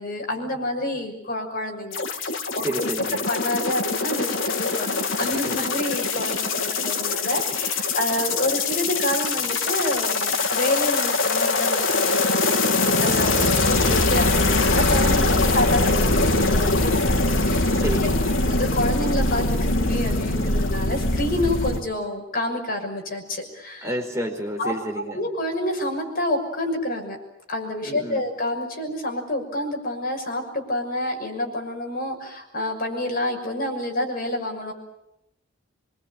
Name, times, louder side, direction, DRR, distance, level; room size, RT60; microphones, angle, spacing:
voice 1, 0.0-2.8 3.3-13.4 13.7-17.7 18.4-23.9 24.6-24.7 25.1-27.2 27.5-34.7, left 1 dB, 50° left, 3 dB, 6.3 m, -28 dB
sound 1, 1.9-21.8, left 3 dB, 80° left, 2.3 m, -22 dB
voice 2, 2.6-3.3 5.3-5.6 17.7-18.2 23.8-25.2 27.8-28.2, equal, 15° right, 2 dB, 4.5 m, -30 dB
25.5 x 23.5 x 8.9 m, 0.85 s
head